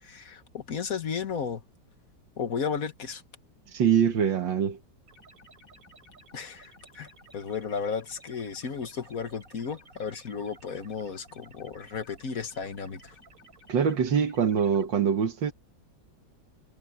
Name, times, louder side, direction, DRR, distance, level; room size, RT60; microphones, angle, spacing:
voice 1, 0.0-1.6 2.4-3.2 6.3-7.1 7.3-13.2, left 6 dB, 50° left, 1.9 m, -34 dB
voice 2, 3.7-4.8 13.7-15.5, right 7 dB, 80° right, 2.3 m, -24 dB
sound 1, 5.1-14.9, right 1 dB, 45° right, 7.7 m, -55 dB
omnidirectional pair, 2.0 m